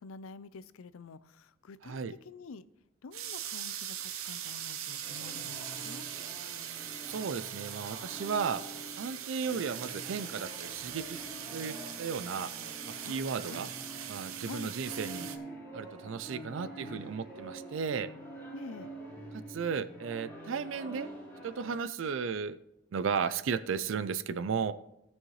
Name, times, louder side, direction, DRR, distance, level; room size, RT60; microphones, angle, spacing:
voice 1, 0.0-2.6 3.0-6.0 13.1-13.7 14.4-14.7 18.5-18.9, left 4 dB, 75° left, 16 dB, 0.5 m, -48 dB
voice 2, 1.8-2.1 7.0-8.6 9.0-11.2 11.5-12.5 12.9-13.7 14.1-15.3 15.7-18.1 19.3-21.1 21.4-22.6 22.9-24.7, right 6 dB, 65° right, 14 dB, 0.4 m, -34 dB
sound 1, 3.1-15.4, right 10 dB, 80° right, 0.8 m, -41 dB
sound 2, 5.0-21.8, right 1 dB, 10° left, 3.8 m, -47 dB
sound 3, 11.5-19.1, equal, 25° right, 0.8 m, -57 dB
17.0 x 6.4 x 3.1 m, 0.85 s
head